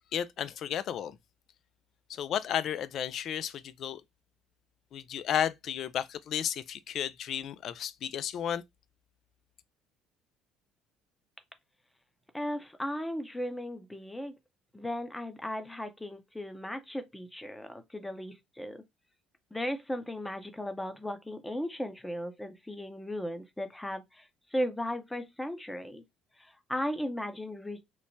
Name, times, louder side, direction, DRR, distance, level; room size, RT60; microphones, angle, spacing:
voice 1, 0.1-1.2 2.1-4.0 4.9-8.6, left 9 dB, 60° left, 0.3 m, -33 dB
voice 2, 12.3-14.3 14.7-18.8 19.5-24.2 24.5-26.0 26.4-27.8, equal, 10° left, 0.6 m, -36 dB
3.0 x 2.0 x 2.7 m
hypercardioid pair, 65°, 0 cm